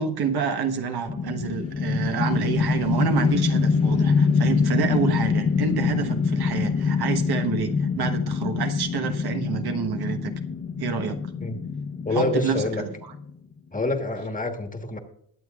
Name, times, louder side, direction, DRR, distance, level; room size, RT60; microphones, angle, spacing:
voice 1, 0.0-10.3 10.8-11.2 12.1-12.9, right 6 dB, 70° right, 1.3 m, -28 dB
sound 1, 1.1-13.3, left 5 dB, 35° left, 1.0 m, -25 dB
voice 2, 12.0-12.8 13.7-15.0, left 2 dB, 20° left, 1.4 m, -27 dB
22.0 x 8.3 x 2.4 m
wide cardioid pair, 135°, 39 cm